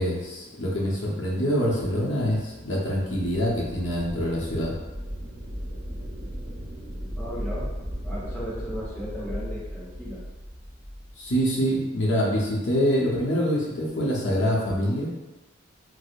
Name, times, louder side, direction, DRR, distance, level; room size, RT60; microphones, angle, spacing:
voice 1, 0.0-4.7 11.2-15.1, equal, 70° left, -5 dB, 0.7 m, -25 dB
sound 1, 2.5-11.4, equal, 30° right, 0.6 m, -37 dB
voice 2, 7.1-7.7 8.0-10.2, equal, 10° left, -9 dB, 1.0 m, -35 dB
4.4 x 2.0 x 2.4 m, 1.1 s
head